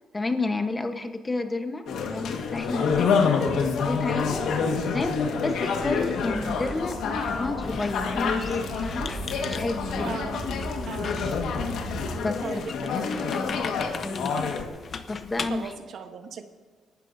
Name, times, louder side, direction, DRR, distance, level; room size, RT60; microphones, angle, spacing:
voice 1, 0.1-4.4 4.9-9.2 9.5-10.2 12.2-14.4 15.1-15.7, left 3 dB, 20° left, 7 dB, 1.1 m, -31 dB
sound 1, 1.9-14.6, left 5 dB, 80° left, 1.7 m, -28 dB
voice 2, 2.8-3.2 4.0-4.1 10.0-10.4 10.9-11.3 12.4-12.7 15.5-16.4, right 6 dB, 65° right, 7 dB, 1.2 m, -38 dB
sound 2, 5.8-12.1, right 1 dB, 10° right, 3.1 m, -37 dB
Squeak, 7.6-15.7, left 5 dB, 45° left, 0.9 m, -40 dB
26.5 x 12.5 x 2.7 m, 1.5 s
cardioid pair, 90°, 0 cm